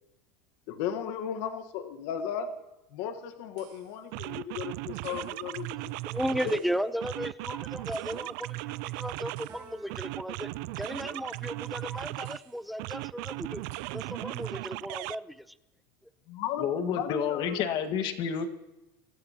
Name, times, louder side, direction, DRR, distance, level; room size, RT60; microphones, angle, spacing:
voice 1, 0.7-2.6 2.9-6.0 6.4-6.6 16.3-17.6, left 8 dB, 65° left, 1.4 m, -35 dB
sound 1, 3.6-3.7 4.1-6.7 7.0-9.6 9.9-12.4 12.8-15.1, right 21 dB, 65° right, 0.4 m, -37 dB
voice 2, 6.0-10.5 10.8-13.6 13.9-15.4, equal, ahead, 0.7 m, -35 dB
sound 2, 9.5-11.4, right 4 dB, 35° right, 3.3 m, -54 dB
voice 3, 16.6-18.5, left 7 dB, 50° left, 1.7 m, -29 dB
25.0 x 14.0 x 2.9 m
supercardioid pair, 125°, 10 cm